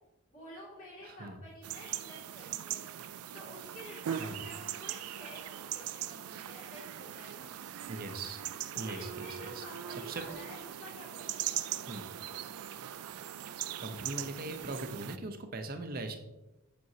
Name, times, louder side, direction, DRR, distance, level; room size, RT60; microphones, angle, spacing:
voice 1, 0.3-2.9 3.3-7.6 8.7-11.9, equal, 40° left, -8 dB, 2.5 m, -50 dB
voice 2, 1.0-1.4 4.2-4.4 7.9-8.4 8.8-9.3 9.6-9.7 10.1-10.2 11.9-12.0 13.8-16.2, right 2 dB, 45° right, 7 dB, 0.7 m, -40 dB
sound 1, 1.6-15.2, right 11 dB, 90° right, 0.4 m, -40 dB
7.7 x 6.1 x 2.7 m, 0.98 s
head